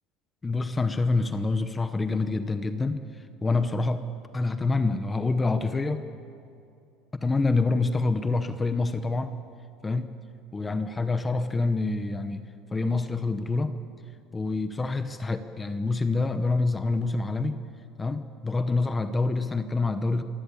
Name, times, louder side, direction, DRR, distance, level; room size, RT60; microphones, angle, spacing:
voice 1, 0.4-4.0 4.3-6.0 7.1-9.3 9.8-10.1 10.5-13.7 14.3-17.6 18.0-20.2, left 3 dB, 15° left, 10 dB, 0.9 m, -26 dB
27.0 x 15.5 x 8.5 m, 2.6 s
cardioid pair, 135°, 0 cm